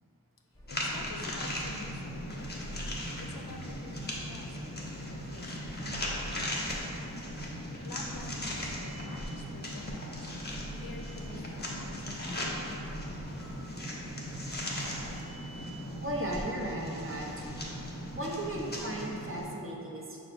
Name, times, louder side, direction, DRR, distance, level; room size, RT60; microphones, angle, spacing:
sound 1, 0.5-17.5, equal, 10° left, 0.9 m, -49 dB
voice 1, 0.7-2.5 3.2-6.7 7.6-10.3 10.7-13.0, left 3 dB, 75° left, 2 dB, 0.5 m, -48 dB
sound 2, 0.7-19.5, equal, 30° left, 0.7 m, -38 dB
voice 2, 16.0-17.8 18.1-20.2, right 1 dB, 35° right, -2 dB, 0.6 m, -36 dB
5.5 x 2.1 x 4.1 m, 2.8 s
wide cardioid pair, 50°, 35 cm